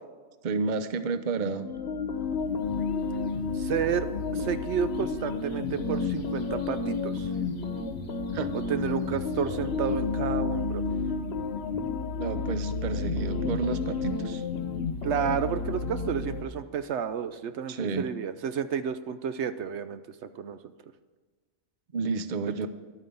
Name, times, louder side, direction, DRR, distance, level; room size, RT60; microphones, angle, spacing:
voice 1, 0.4-1.7 8.3-8.5 12.2-14.4 17.7-18.1 21.9-22.7, right 4 dB, 45° right, 11 dB, 0.8 m, -30 dB
sound 1, 1.6-16.4, left 4 dB, 60° left, 1.1 m, -31 dB
voice 2, 3.5-4.1 4.3-7.3 8.5-10.8 15.0-20.6, right 8 dB, 70° right, 11 dB, 0.9 m, -31 dB
12.0 x 9.1 x 6.9 m, 1.4 s
omnidirectional pair, 1.2 m